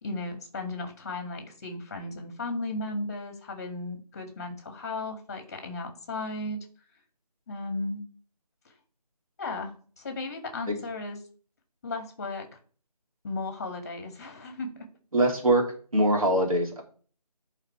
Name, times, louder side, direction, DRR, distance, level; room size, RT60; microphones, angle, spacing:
voice 1, 0.0-6.6 7.5-8.0 9.4-9.7 10.0-11.2 11.8-12.5 13.2-14.9, left 2 dB, 25° left, 6 dB, 1.7 m, -35 dB
voice 2, 15.1-15.7 15.9-16.8, right 1 dB, 60° right, 1 dB, 2.8 m, -23 dB
10.5 x 4.2 x 4.4 m, 0.42 s
figure-of-eight pair, 165°, 21 cm